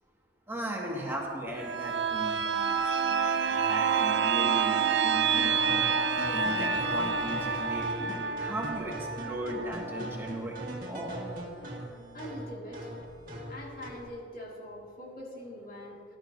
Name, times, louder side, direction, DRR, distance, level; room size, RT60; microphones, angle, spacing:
voice 1, 0.5-5.8 6.3-11.2, right 1 dB, 15° right, -3 dB, 1.8 m, -37 dB
sound 1, 1.6-11.1 11.5-11.6, right 6 dB, 80° right, 0.7 m, -28 dB
sound 2, 5.4-14.1, right 1 dB, 50° right, 1.7 m, -41 dB
voice 2, 12.1-12.9 13.5-16.0, equal, 55° left, -2 dB, 2.0 m, -43 dB
18.5 x 11.5 x 2.7 m, 2.5 s
head